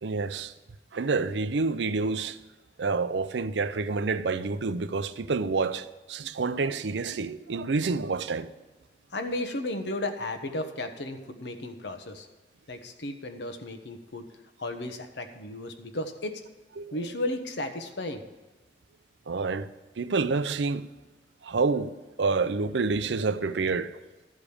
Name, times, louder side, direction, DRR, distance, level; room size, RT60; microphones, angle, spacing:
voice 1, 0.0-0.5 0.9-2.4 2.8-8.5 16.8-17.0 19.3-19.7 20.0-20.9 21.4-23.9, right 4 dB, 70° right, 0.5 m, -28 dB
voice 2, 9.1-12.3 12.7-14.3 14.6-16.4 16.9-18.2, left 1 dB, 70° left, 1.1 m, -34 dB
13.0 x 5.1 x 8.5 m
head